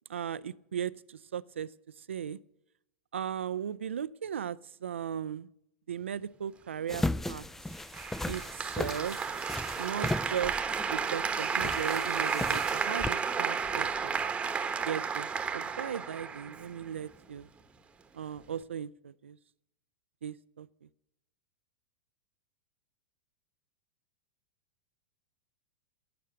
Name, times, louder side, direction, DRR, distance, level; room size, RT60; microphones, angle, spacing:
voice 1, 0.1-1.7 2.1-2.4 3.1-5.5 5.9-7.5 8.3-9.2 9.8-10.5 10.9-14.1 14.9-17.5 18.1-19.4 20.2-20.7, right 8 dB, 80° right, 18 dB, 0.4 m, -37 dB
sound 1, 6.9-13.1, left 2 dB, 5° left, 0.4 m, -36 dB
Applause, 7.9-17.0, right 6 dB, 15° right, 1.1 m, -32 dB
13.0 x 7.5 x 9.4 m, 0.82 s
hypercardioid pair, 100°, 6 cm